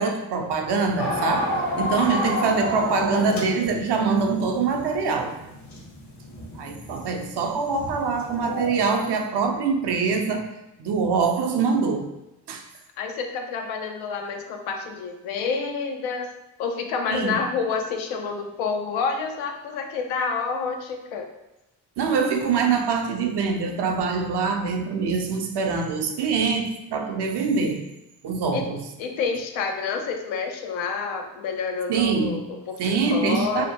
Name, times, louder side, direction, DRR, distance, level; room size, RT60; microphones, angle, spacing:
voice 1, 0.0-1.5 1.8-5.4 6.5-10.5 10.8-12.1 12.5-12.6 17.1-17.4 22.0-27.8 28.2-28.8 31.9-32.5 32.8-33.7, right 5 dB, 60° right, 4 dB, 0.6 m, -24 dB
sound 1, 1.0-8.8, left 1 dB, 65° left, 1.0 m, -30 dB
voice 2, 13.0-16.3 16.6-21.3 28.5-28.6 29.0-33.7, left 5 dB, 85° left, 4 dB, 0.5 m, -28 dB
2.8 x 2.1 x 2.8 m, 0.92 s
supercardioid pair, 50°, 46 cm